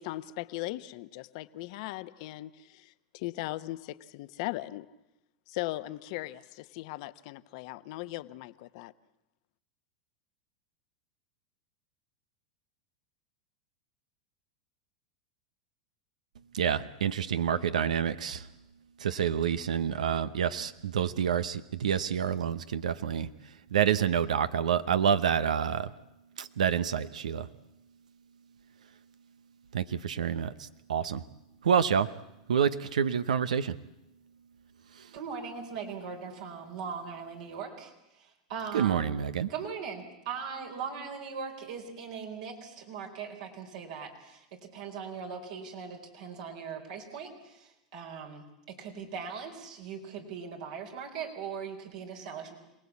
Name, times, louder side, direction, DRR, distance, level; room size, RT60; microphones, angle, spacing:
voice 1, 0.0-4.9 5.5-8.9, left 17 dB, 60° left, 13 dB, 1.0 m, -38 dB
voice 2, 16.5-18.5 19.0-23.3 23.7-25.9 26.4-27.5 29.7-31.2 31.6-32.1 32.5-33.8 35.0-35.1 38.7-39.5, right 8 dB, 90° right, 13 dB, 0.9 m, -28 dB
voice 3, 35.1-39.2 39.5-52.5, right 6 dB, 70° right, 2 dB, 4.4 m, -40 dB
27.0 x 18.5 x 8.4 m, 0.89 s
hypercardioid pair, 105°, 4 cm